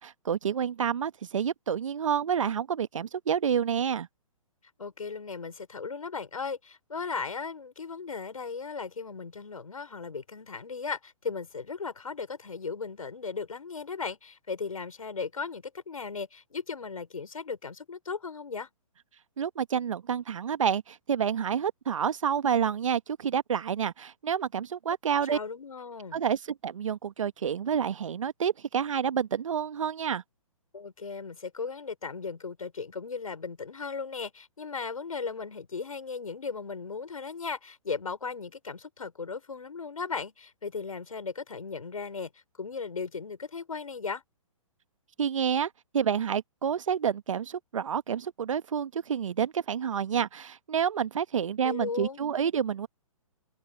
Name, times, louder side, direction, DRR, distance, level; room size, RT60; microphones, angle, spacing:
voice 1, 0.0-4.1 19.4-25.4 26.1-30.2 45.2-52.9, right 8 dB, 65° right, 1.4 m, -29 dB
voice 2, 4.8-18.7 25.2-26.2 30.7-42.3 42.6-44.2 51.6-52.2, left 5 dB, 75° left, 5.7 m, -37 dB
figure-of-eight pair, 125°, 18 cm